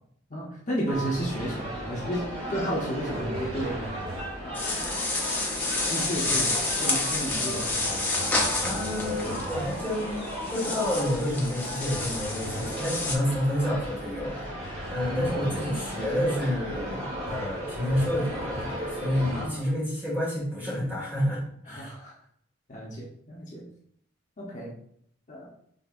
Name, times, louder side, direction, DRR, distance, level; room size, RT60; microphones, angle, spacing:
voice 1, 0.3-3.9 4.4-4.9 5.9-8.0 15.0-15.3 19.3-19.8 21.7-22.1 22.7-23.7 24.4-24.7 25.3-25.5, right 1 dB, 40° left, -4 dB, 0.9 m, -33 dB
sound 1, 0.9-19.5, equal, 30° right, 1.4 m, -36 dB
sound 2, 3.1-4.5 7.3-9.9 11.9-12.8 14.6-15.9 17.3-18.9 19.2-19.6, right 1 dB, 75° right, 0.5 m, -41 dB
sound 3, 4.5-13.1, left 2 dB, 10° left, 0.6 m, -30 dB
voice 2, 8.6-10.2 10.5-14.5 14.9-21.4 21.7-21.9, equal, 10° right, -6 dB, 1.7 m, -29 dB
5.1 x 3.5 x 2.5 m, 0.66 s
head